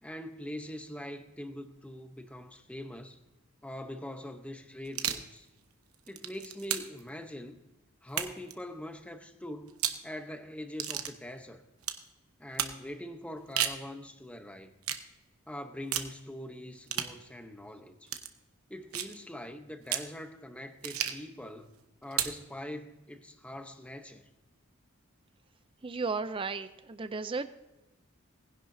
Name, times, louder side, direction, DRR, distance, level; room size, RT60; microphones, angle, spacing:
voice 1, 0.0-3.2 3.6-5.5 6.1-7.6 8.0-11.6 12.4-14.7 15.5-18.2 18.7-21.7 22.0-24.3, left 1 dB, 5° left, 0.8 m, -43 dB
sound 1, 4.9-5.3 5.9-7.0 8.1-8.5 9.7-10.0 10.8-11.1 11.8-12.0 12.6-12.8 13.4-13.8 14.8-15.1 15.9-16.1 16.9-17.2 18.1-18.3 18.9-19.2 19.9-20.1 20.8-21.3 22.1-22.4, right 10 dB, 90° right, 0.9 m, -33 dB
voice 2, 25.8-27.5, right 4 dB, 25° right, 0.4 m, -34 dB
19.0 x 10.5 x 2.7 m
head